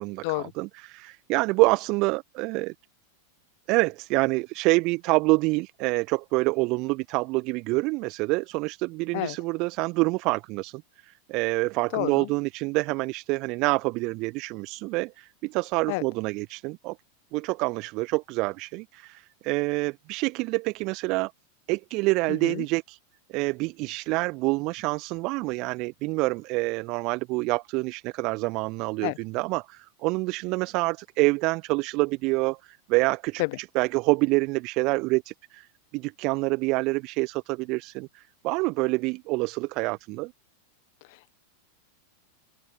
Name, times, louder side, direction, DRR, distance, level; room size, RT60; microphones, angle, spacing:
voice 1, 0.0-2.7 3.7-17.0 17.3-21.3 21.7-23.0 23.3-35.7 35.9-40.3, right 24 dB, 40° right, 1.3 m, -27 dB
voice 2, 11.9-12.3 15.9-16.0 22.4-22.6 29.0-29.2 33.4-33.5 41.0-41.3, left 26 dB, 50° left, 1.1 m, -29 dB
open air
figure-of-eight pair, 90°, 0 cm